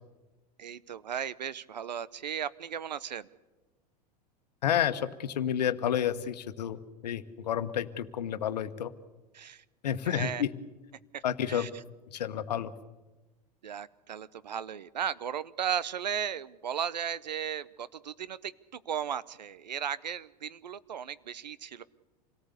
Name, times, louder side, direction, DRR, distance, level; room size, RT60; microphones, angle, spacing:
voice 1, 0.6-3.3 9.3-9.6 10.0-10.4 11.1-11.8 13.6-21.8, right 8 dB, 80° right, 17 dB, 0.8 m, -36 dB
voice 2, 4.6-8.9 9.8-10.5 11.2-11.7 12.1-12.7, left 9 dB, 70° left, 11 dB, 1.3 m, -30 dB
27.0 x 18.0 x 8.3 m, 1.2 s
hypercardioid pair, 90°, 21 cm